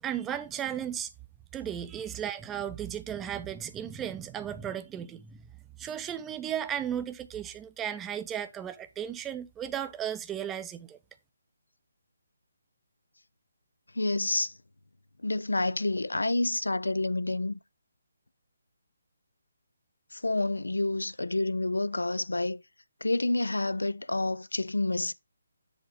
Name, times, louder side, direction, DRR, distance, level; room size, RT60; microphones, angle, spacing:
voice 1, 0.0-1.1 1.5-5.4 5.8-11.0, right 9 dB, 10° right, 0.5 m, -35 dB
voice 2, 13.9-14.5 15.2-17.6 20.1-22.6 23.0-25.1, left 2 dB, 80° left, 0.5 m, -28 dB
7.2 x 5.1 x 4.5 m
figure-of-eight pair, 145°, 0 cm